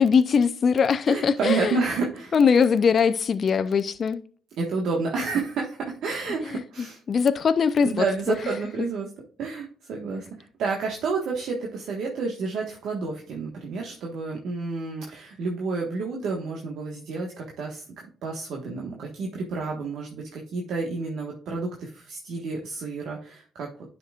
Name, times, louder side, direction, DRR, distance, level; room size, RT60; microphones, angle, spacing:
voice 1, 0.0-1.8 2.3-4.2 6.5-6.6 7.1-8.4, left 6 dB, 50° left, 0.5 m, -21 dB
voice 2, 1.1-2.3 4.6-7.0 7.8-9.1 9.4-17.8 18.2-23.7, right 4 dB, 75° right, 1.4 m, -30 dB
10.0 x 5.8 x 2.4 m
cardioid pair, 90°, 0 cm